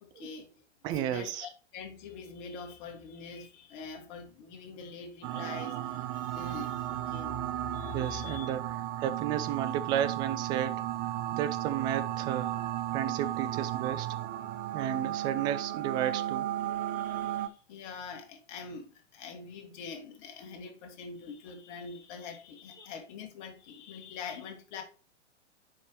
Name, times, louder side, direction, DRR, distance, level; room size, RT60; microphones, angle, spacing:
voice 1, 0.0-0.6 0.9-7.4 7.7-8.5 16.6-24.8, left 5 dB, 40° left, 1.7 m, -44 dB
voice 2, 0.8-1.5 7.9-12.6 12.9-14.2 14.7-16.5, right 10 dB, 15° right, 0.3 m, -33 dB
sound 1, 5.2-17.5, right 13 dB, 35° right, 0.7 m, -34 dB
9.3 x 5.1 x 3.0 m
figure-of-eight pair, 100°, 35 cm